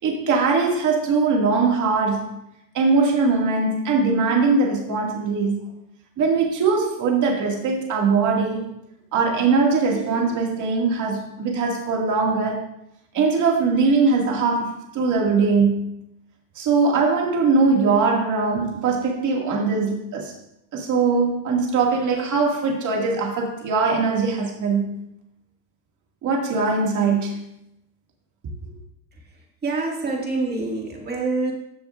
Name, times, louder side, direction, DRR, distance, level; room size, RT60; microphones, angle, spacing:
voice 1, 0.0-2.4 2.7-5.7 6.2-8.7 9.1-12.7 13.1-15.9 16.6-20.3 20.7-24.9 26.2-27.4, right 4 dB, 35° right, 2.3 m, -21 dB
voice 2, 29.1-31.5, right 3 dB, 20° right, 2.2 m, -27 dB
14.0 x 7.0 x 2.6 m
supercardioid pair, 140°, 50 cm